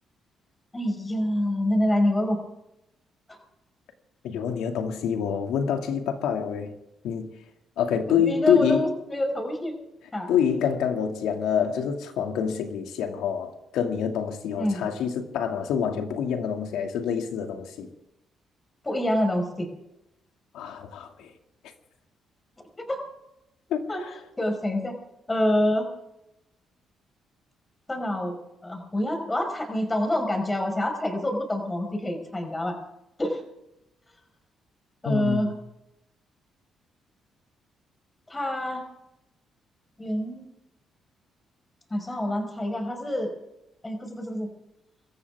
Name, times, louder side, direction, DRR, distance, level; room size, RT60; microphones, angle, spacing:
voice 1, 0.7-2.4 8.1-9.8 10.1-10.3 14.6-14.8 18.8-19.7 22.9-23.0 23.9-24.0 24.4-24.9 25.3-25.9 27.9-28.4 28.6-32.7 33.2-33.4 35.0-35.5 38.3-38.8 40.0-40.5 41.9-43.3 43.8-44.5, left 1 dB, 20° left, 4.9 m, -26 dB
voice 2, 4.2-6.7 7.0-7.3 7.8-8.9 10.3-17.9 20.5-21.3 23.7-24.2 35.0-35.5, left 7 dB, 85° left, 2.3 m, -26 dB
25.5 x 14.5 x 3.6 m
cardioid pair, 90°, 0 cm